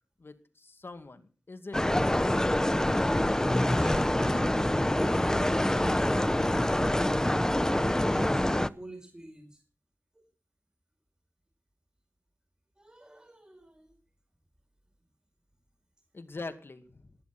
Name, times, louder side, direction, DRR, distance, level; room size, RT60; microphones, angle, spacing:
voice 1, 0.2-2.0 16.1-17.0, left 3 dB, 55° left, 9 dB, 2.2 m, -43 dB
sound 1, 1.7-8.7, left 1 dB, 15° left, 0.8 m, -26 dB
voice 2, 2.8-9.6 10.1-10.2 12.8-14.0, right 1 dB, 15° right, 4 dB, 5.0 m, -44 dB
21.0 x 10.5 x 6.0 m, 0.38 s
wide cardioid pair, 65°, 5 cm